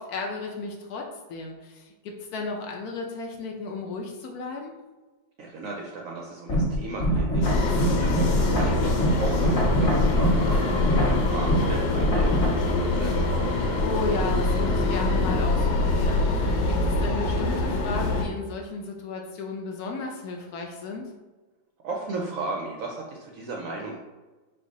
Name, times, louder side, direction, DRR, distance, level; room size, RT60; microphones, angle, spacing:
voice 1, 0.0-4.8 8.4-8.8 13.8-21.1, left 3 dB, 70° left, 1 dB, 1.0 m, -34 dB
voice 2, 5.4-13.5 21.8-24.0, right 3 dB, 70° right, 0 dB, 0.8 m, -36 dB
sound 1, 6.5-12.5, equal, 45° left, 1.6 m, -24 dB
sound 2, 7.4-18.3, left 2 dB, 85° left, 1.3 m, -24 dB
4.5 x 2.3 x 3.9 m, 1.2 s
omnidirectional pair, 1.9 m